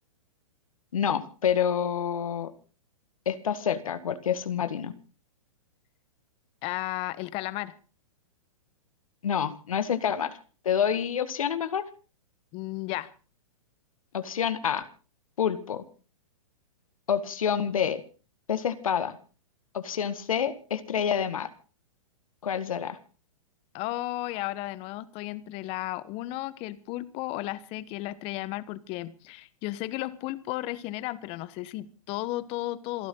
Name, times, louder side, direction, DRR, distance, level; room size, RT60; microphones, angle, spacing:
voice 1, 0.9-2.5 3.3-4.9 9.2-10.4 10.6-11.8 14.1-14.9 15.4-15.8 17.1-18.0 18.5-19.2 19.7-21.5 22.4-23.0, left 8 dB, 75° left, 12 dB, 1.9 m, -28 dB
voice 2, 6.6-7.7 12.5-13.1 23.7-33.1, left 17 dB, 35° left, 17 dB, 1.2 m, -34 dB
27.5 x 11.0 x 3.9 m, 0.36 s
hypercardioid pair, 125°, 18 cm